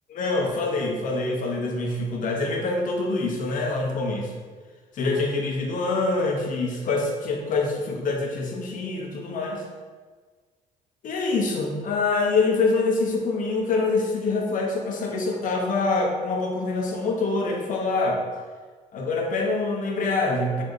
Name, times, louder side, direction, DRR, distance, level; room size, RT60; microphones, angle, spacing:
voice 1, 0.1-4.3 4.9-9.6 11.0-18.2 18.9-20.6, left 3 dB, 60° left, 0 dB, 0.9 m, -25 dB
4.2 x 3.6 x 3.2 m, 1.5 s
cardioid pair, 85°, 15 cm